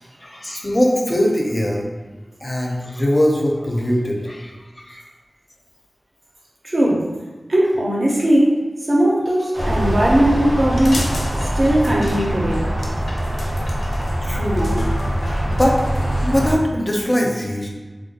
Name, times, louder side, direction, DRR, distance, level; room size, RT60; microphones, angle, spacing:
voice 1, 0.2-1.9 2.4-5.0 14.2-15.2 15.4-15.8 16.2-17.7, equal, 25° left, -1 dB, 0.4 m, -21 dB
voice 2, 6.6-7.0 7.5-11.1 11.6-12.7 15.3-15.4, right 1 dB, 55° right, -3 dB, 0.5 m, -18 dB
sound 1, 9.5-16.6, equal, 85° right, 0.7 m, -23 dB
sound 2, 10.7-16.5, left 1 dB, 85° left, 0.4 m, -35 dB
2.2 x 2.2 x 2.7 m, 1.3 s
wide cardioid pair, 70°, 0 cm